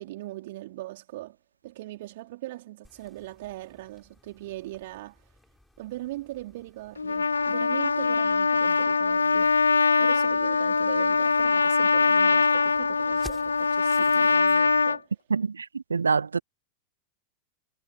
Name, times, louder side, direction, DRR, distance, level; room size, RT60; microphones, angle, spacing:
voice 1, 0.0-1.4 1.6-5.3 5.8-9.6 10.0-15.2, right 17 dB, 55° right, 4.0 m, -40 dB
sound 1, 2.8-14.6, left 1 dB, 5° left, 7.8 m, -53 dB
Trumpet, 7.0-15.0, left 4 dB, 75° left, 0.7 m, -22 dB
voice 2, 15.3-15.7 15.9-16.4, right 5 dB, 75° right, 0.3 m, -25 dB
figure-of-eight pair, 90°, 0 cm